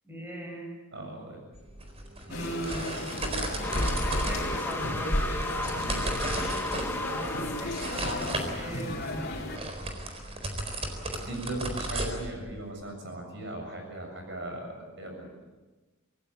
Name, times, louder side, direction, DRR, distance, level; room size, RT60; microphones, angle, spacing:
voice 1, 0.0-0.7 2.3-2.9 4.0-5.4 7.1-9.2, right 1 dB, 10° right, -1 dB, 6.9 m, -39 dB
voice 2, 0.9-1.4 5.5-6.5 11.3-15.4, right 2 dB, 55° right, 3 dB, 7.4 m, -38 dB
sound 1, 1.5-12.7, right 1 dB, 30° right, 4.1 m, -36 dB
sound 2, 2.3-9.6, left 1 dB, 45° left, 4.2 m, -33 dB
sound 3, 3.6-8.9, left 2 dB, 10° left, 1.4 m, -35 dB
26.5 x 19.0 x 8.5 m, 1.2 s
head